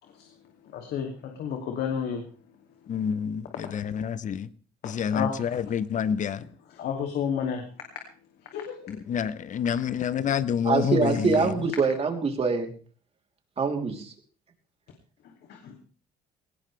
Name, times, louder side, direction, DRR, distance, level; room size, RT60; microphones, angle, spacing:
voice 1, 0.0-0.3 0.6-2.2 3.6-3.7 4.8-5.6 6.7-7.6 8.4-9.0 15.2-15.8, left 7 dB, 70° left, 2.7 m, -32 dB
voice 2, 2.9-4.5 4.8-6.4 8.9-11.7, left 7 dB, 50° left, 1.0 m, -28 dB
voice 3, 10.6-12.7 13.6-14.1, right 4 dB, 35° right, 3.4 m, -24 dB
18.5 x 18.0 x 3.4 m
cardioid pair, 110°, 17 cm